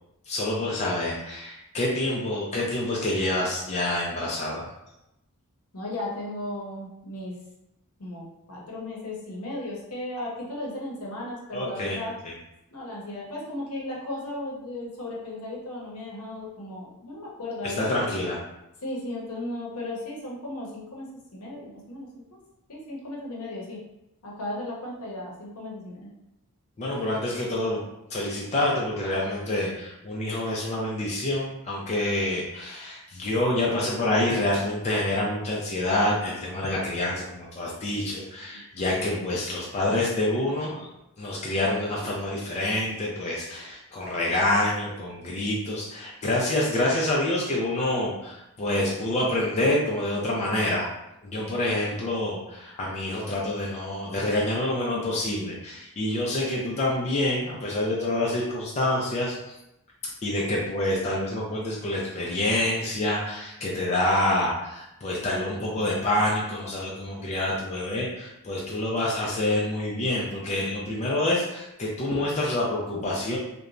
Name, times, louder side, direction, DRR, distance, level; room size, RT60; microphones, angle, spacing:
voice 1, 0.3-4.7 11.5-12.0 12.2-12.3 17.6-18.4 26.8-27.8 28.1-40.9 41.2-50.9 51.2-59.6 60.0-73.4, left 1 dB, 30° left, -4 dB, 0.4 m, -27 dB
voice 2, 5.7-7.4 8.0-12.2 12.7-17.9 18.8-22.4 22.7-23.8 24.2-26.1 38.5-38.6, left 1 dB, 70° left, -3 dB, 0.8 m, -35 dB
2.9 x 2.2 x 2.5 m, 0.87 s
head